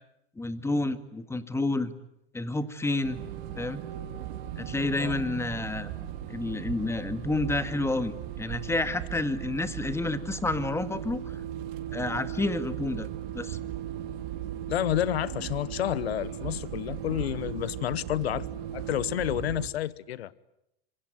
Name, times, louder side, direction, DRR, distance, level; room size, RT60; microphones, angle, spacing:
voice 1, 0.4-1.9 2.3-3.2 3.6-3.8 4.6-5.9 6.3-11.4 11.9-13.1 13.3-13.6, left 2 dB, 10° left, 1.9 m, -30 dB
sound 1, 3.0-19.7, right 10 dB, 60° right, 3.9 m, -37 dB
voice 2, 14.7-18.5 18.7-20.3, left 12 dB, 90° left, 1.2 m, -30 dB
26.0 x 24.0 x 9.4 m
supercardioid pair, 120°, 31 cm